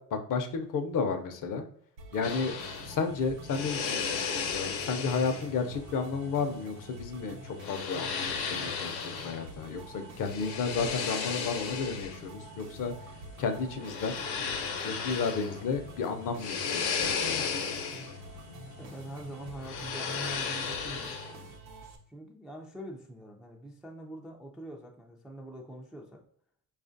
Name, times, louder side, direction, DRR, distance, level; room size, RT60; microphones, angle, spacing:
voice 1, 0.1-1.6 2.1-2.5 2.8-12.9 13.4-14.2 14.8-17.6, left 5 dB, 40° left, 7 dB, 0.6 m, -32 dB
sound 1, 2.0-22.0, right 4 dB, 85° right, 0.8 m, -49 dB
sound 2, 2.2-21.6, left 6 dB, 70° left, 0.8 m, -36 dB
voice 2, 18.8-21.2 22.1-26.2, right 1 dB, ahead, -1 dB, 0.3 m, -44 dB
4.8 x 2.4 x 2.6 m, 0.63 s
supercardioid pair, 80°, 48 cm